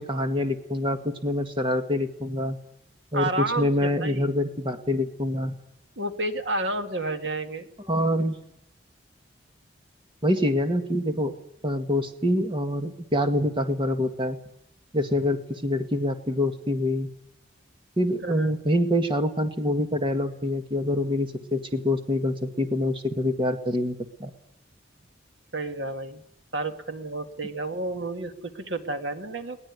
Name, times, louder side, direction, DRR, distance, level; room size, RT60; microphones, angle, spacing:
voice 1, 0.0-2.6 3.1-5.5 7.9-8.4 10.2-11.3 11.6-14.4 14.9-17.1 18.0-24.3, left 1 dB, 25° right, 7 dB, 2.0 m, -26 dB
voice 2, 3.1-4.3 6.0-7.7 18.2-18.5 25.5-26.2 26.5-29.6, right 2 dB, 70° right, 7 dB, 2.2 m, -31 dB
22.0 x 19.5 x 9.7 m, 0.75 s
head